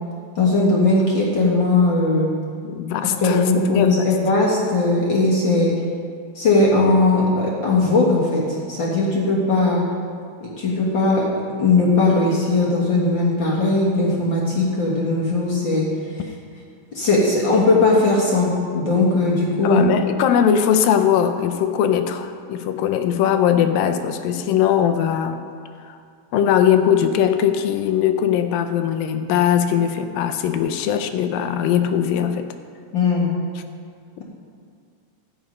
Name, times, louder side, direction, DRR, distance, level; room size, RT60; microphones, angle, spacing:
voice 1, 0.3-2.3 3.0-5.7 6.3-9.9 10.4-11.2 11.6-15.9 16.9-19.8 32.9-33.3, left 3 dB, 45° left, -5 dB, 1.6 m, -18 dB
voice 2, 2.7-4.1 19.6-25.4 25.8-26.0 26.3-32.5, left 9 dB, 85° left, 8 dB, 2.4 m, -20 dB
12.0 x 9.2 x 5.3 m, 2.2 s
omnidirectional pair, 4.1 m